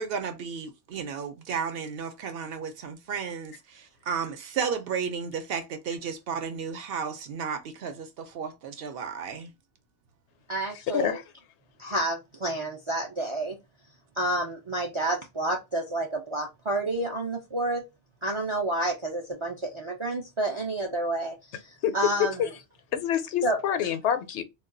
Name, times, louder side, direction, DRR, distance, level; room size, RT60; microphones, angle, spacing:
voice 1, 0.0-9.5, right 6 dB, 65° right, 0.7 m, -33 dB
voice 2, 10.5-11.2 11.8-13.6 14.2-17.8 18.2-21.6 21.9-22.5 23.4-23.6, right 1 dB, 50° right, 0.3 m, -29 dB
voice 3, 22.2-22.5 22.9-24.4, left 9 dB, 85° left, 0.9 m, -27 dB
2.3 x 2.2 x 3.7 m
omnidirectional pair, 1.1 m